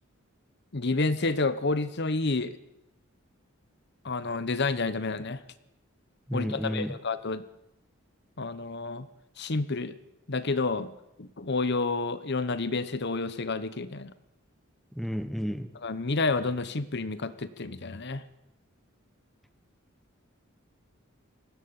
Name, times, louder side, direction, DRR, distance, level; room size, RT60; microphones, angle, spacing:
voice 1, 0.7-2.5 4.0-5.4 6.3-7.4 8.4-9.1 9.4-10.0 10.3-10.9 11.2-14.1 15.8-18.2, left 3 dB, 55° left, 1.0 m, -29 dB
voice 2, 6.3-7.0 14.9-15.7, equal, ahead, 1.0 m, -32 dB
19.5 x 15.5 x 8.8 m
head